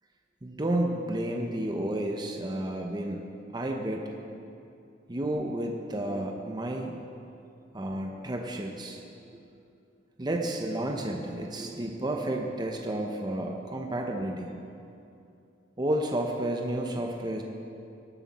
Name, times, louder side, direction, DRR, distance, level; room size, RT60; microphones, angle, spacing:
voice 1, 0.4-3.3 3.5-4.1 5.1-7.0 7.7-9.4 10.2-14.5 15.8-17.4, right 1 dB, 25° right, 2 dB, 0.8 m, -31 dB
18.0 x 8.2 x 4.2 m, 2.6 s
head